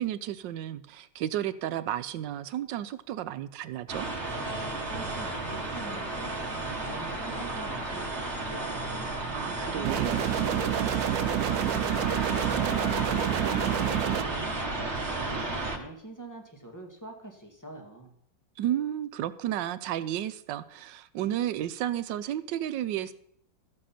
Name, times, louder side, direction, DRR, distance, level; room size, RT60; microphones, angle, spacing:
voice 1, 0.0-4.1 9.3-10.2 18.6-23.1, right 12 dB, 85° right, 14 dB, 1.3 m, -32 dB
sound 1, 3.9-15.8, right 2 dB, 40° right, 1.7 m, -33 dB
voice 2, 4.9-6.4 6.6-9.0 9.6-12.1 12.4-14.8 15.2-18.1, right 2 dB, 10° left, 2 dB, 1.8 m, -44 dB
sound 2, 9.8-14.2, right 12 dB, 70° right, 1.0 m, -28 dB
13.5 x 7.7 x 5.8 m, 0.69 s
omnidirectional pair, 2.0 m